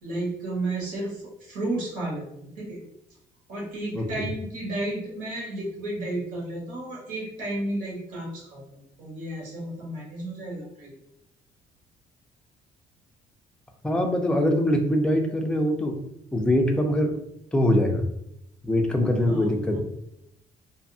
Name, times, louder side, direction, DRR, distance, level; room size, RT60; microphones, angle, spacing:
voice 1, 0.0-2.8 3.5-10.9 19.3-19.8, right 2 dB, 90° right, -4 dB, 1.3 m, -33 dB
voice 2, 3.9-4.2 13.8-16.0 16.3-17.1 17.5-18.1 18.6-19.8, left 1 dB, 5° left, 3 dB, 0.4 m, -23 dB
2.7 x 2.2 x 2.6 m, 0.79 s
cardioid pair, 130°, 15 cm